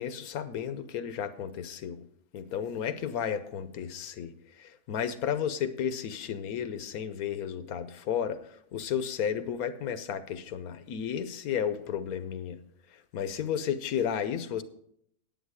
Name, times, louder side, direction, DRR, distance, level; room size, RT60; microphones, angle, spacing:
voice 1, 0.0-2.0 2.3-12.6 12.9-14.6, left 8 dB, 75° left, 12 dB, 1.2 m, -33 dB
10.5 x 8.8 x 4.8 m, 0.71 s
omnidirectional pair, 1.6 m